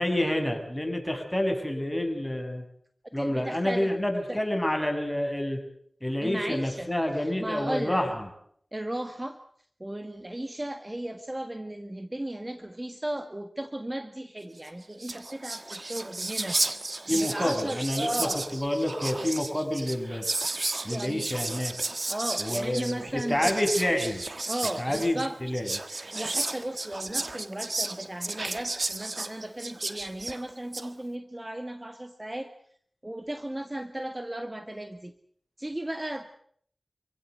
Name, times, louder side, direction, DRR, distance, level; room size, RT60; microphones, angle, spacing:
voice 1, 0.0-2.6 3.1-5.6 6.0-8.3 17.1-20.2 20.8-21.7 22.4-24.2 24.8-25.8, left 1 dB, 10° left, 4 dB, 6.8 m, -28 dB
voice 2, 3.2-4.0 4.3-4.4 6.2-8.0 8.7-9.4 9.8-16.7 17.1-18.5 20.9-21.3 22.1-23.6 24.5-25.4 26.1-32.5 33.0-35.1 35.6-36.4, right 1 dB, 25° right, 8 dB, 1.8 m, -35 dB
Whispering, 14.7-14.8 14.9-30.9, right 2 dB, 55° right, 1.6 m, -33 dB
26.5 x 16.5 x 8.1 m, 0.63 s
cardioid pair, 40°, 0 cm